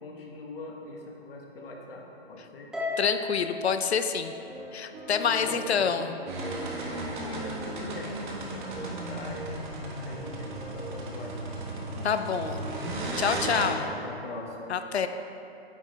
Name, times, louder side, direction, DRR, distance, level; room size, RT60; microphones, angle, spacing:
voice 1, 0.0-2.7 5.2-6.1 6.9-9.5 10.0-11.5 13.5-14.7, left 3 dB, 60° left, 0 dB, 1.6 m, -42 dB
Harp, 2.7-5.2, left 3 dB, ahead, 0.7 m, -36 dB
voice 2, 3.0-4.3 4.7-6.2 12.0-12.6 13.2-13.8 14.7-15.1, left 6 dB, 75° left, 9 dB, 0.7 m, -27 dB
sound 1, 4.2-13.4, right 3 dB, 20° right, 1.6 m, -44 dB
sound 2, 6.3-13.7, right 2 dB, 45° right, 1.5 m, -35 dB
9.3 x 7.2 x 3.3 m, 2.7 s
hypercardioid pair, 140°, 32 cm